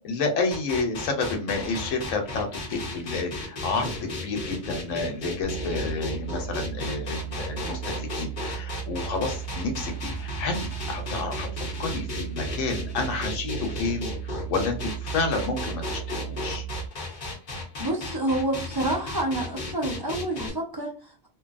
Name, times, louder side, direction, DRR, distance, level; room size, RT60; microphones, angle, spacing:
voice 1, 0.0-16.6, left 3 dB, 75° left, 4 dB, 1.0 m, -30 dB
sound 1, 0.5-20.5, left 2 dB, 45° left, 0.7 m, -35 dB
sound 2, 5.4-16.9, right 11 dB, 70° right, 0.9 m, -36 dB
voice 2, 17.8-21.3, right 1 dB, 30° right, -1 dB, 0.4 m, -28 dB
2.9 x 2.2 x 2.4 m, 0.41 s
omnidirectional pair, 1.4 m